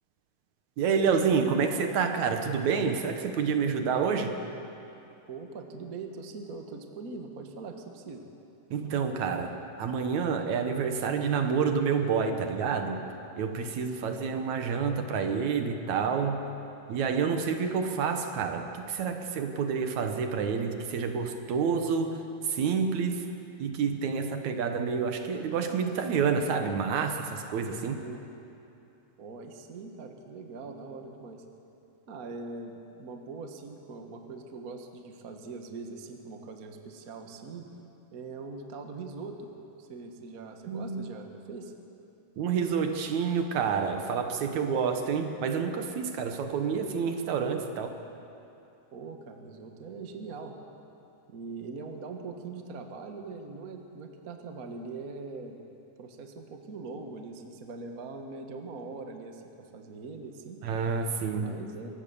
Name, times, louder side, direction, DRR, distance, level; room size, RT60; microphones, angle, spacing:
voice 1, 0.8-4.3 8.7-13.0 13.4-16.4 16.9-23.3 23.6-28.0 40.7-41.0 42.4-48.0 60.6-61.5, right 6 dB, 65° right, 6 dB, 2.4 m, -28 dB
voice 2, 5.3-8.2 27.7-28.3 29.2-31.4 32.1-37.7 38.1-39.5 39.8-41.7 48.9-50.6 51.3-55.6 56.0-60.6 61.4-61.9, right 4 dB, 45° right, 4 dB, 1.1 m, -42 dB
23.5 x 18.5 x 7.0 m, 2.8 s
omnidirectional pair, 3.8 m